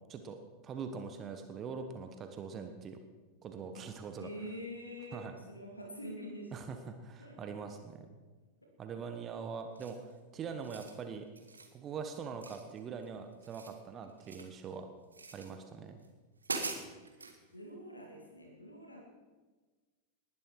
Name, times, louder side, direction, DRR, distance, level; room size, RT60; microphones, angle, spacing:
voice 1, 0.6-3.0 3.4-4.3 5.1-5.3 6.5-8.1 8.8-10.0 10.3-11.2 11.7-14.9 15.3-16.0, right 6 dB, 25° right, 7 dB, 1.3 m, -43 dB
voice 2, 4.2-6.5 7.2-7.6 17.5-19.0, equal, 85° left, 1 dB, 2.5 m, -45 dB
sound 1, 9.8-10.1 10.5-11.0 11.4-11.7 12.4-13.1 13.3-14.6 15.1-15.5 16.0-16.1 16.4-17.4, right 3 dB, 75° right, 1.7 m, -42 dB
19.5 x 11.0 x 4.8 m, 1.3 s
figure-of-eight pair, 90°, 0 cm